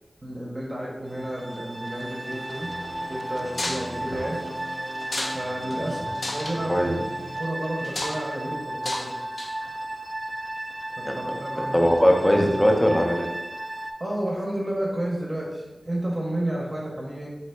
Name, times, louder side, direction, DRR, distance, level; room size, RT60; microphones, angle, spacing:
voice 1, 0.2-2.7 3.1-4.4 5.3-6.0 6.3-6.9 7.4-9.1 11.0-12.0 14.0-17.3, right 1 dB, 35° right, -4 dB, 0.8 m, -31 dB
sound 1, 1.1-13.9, right 1 dB, 55° right, 0.3 m, -34 dB
sound 2, 1.6-7.4, left 1 dB, 85° left, 1.0 m, -41 dB
sound 3, 3.5-3.8 5.0-5.4 5.7-5.8 6.2-6.6 7.8-8.2 8.8-9.1 9.4-9.7, left 1 dB, 70° left, 0.6 m, -31 dB
voice 2, 11.5-13.3, equal, 15° left, 2 dB, 0.6 m, -20 dB
3.2 x 2.9 x 4.4 m, 1.1 s
wide cardioid pair, 90°, 0 cm